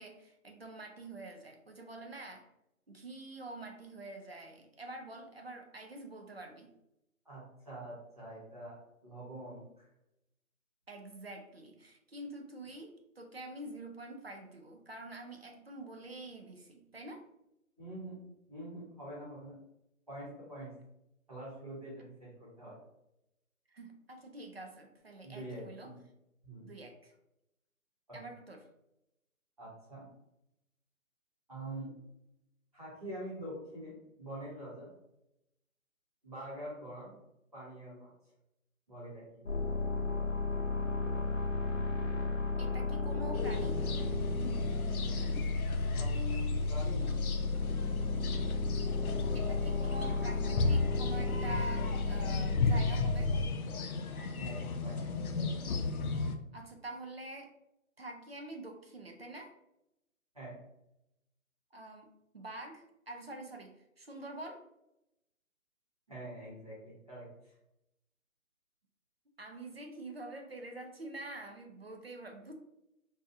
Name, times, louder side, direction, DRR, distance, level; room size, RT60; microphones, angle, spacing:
voice 1, 0.0-2.5 2.9-6.7 10.9-17.2 23.7-25.9 26.6-27.1 28.1-28.7 42.6-43.8 49.3-53.3 56.5-57.5 58.0-59.5 61.7-62.1 62.3-64.6 69.4-72.5, right 2 dB, 45° right, 3 dB, 0.5 m, -46 dB
voice 2, 7.2-9.9 17.8-18.2 18.5-19.6 20.1-20.7 21.3-22.8 25.2-25.9 26.4-26.7 28.1-28.2 29.6-30.0 31.5-31.9 32.7-34.9 36.2-37.1 37.5-38.1 38.9-39.4 45.8-47.2 49.4-49.7 54.3-55.7 60.3-60.6 66.1-67.5, right 1 dB, 25° right, -9 dB, 0.9 m, -45 dB
sound 1, 39.4-53.5, left 3 dB, 60° left, 0.9 m, -33 dB
sound 2, 43.3-56.4, left 3 dB, 85° left, 0.6 m, -35 dB
4.0 x 2.4 x 2.5 m, 0.86 s
hypercardioid pair, 170°, 42 cm